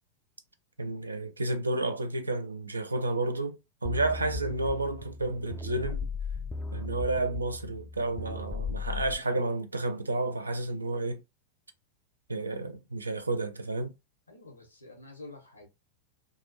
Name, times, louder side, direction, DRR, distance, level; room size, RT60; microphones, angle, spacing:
voice 1, 0.8-6.0 6.7-11.2 12.3-13.9, right 2 dB, 80° right, 0.4 m, -31 dB
sound 1, 3.8-9.2, left 4 dB, 10° left, 0.3 m, -37 dB
voice 2, 14.3-15.7, left 2 dB, 80° left, 0.9 m, -48 dB
2.8 x 2.4 x 2.6 m
figure-of-eight pair, 90°, 0 cm